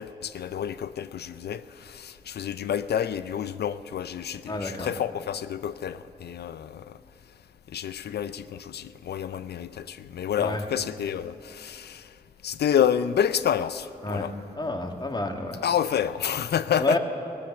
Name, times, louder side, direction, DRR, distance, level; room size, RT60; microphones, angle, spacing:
voice 1, 0.0-6.8 7.7-12.0 12.4-14.3 15.6-17.0, left 9 dB, 70° left, 0.5 m, -29 dB
voice 2, 4.5-4.9 10.4-10.6 14.0-14.3 14.6-15.6 16.8-17.0, left 2 dB, 25° left, 1.9 m, -29 dB
16.0 x 11.5 x 7.2 m
cardioid pair, 50°, 17 cm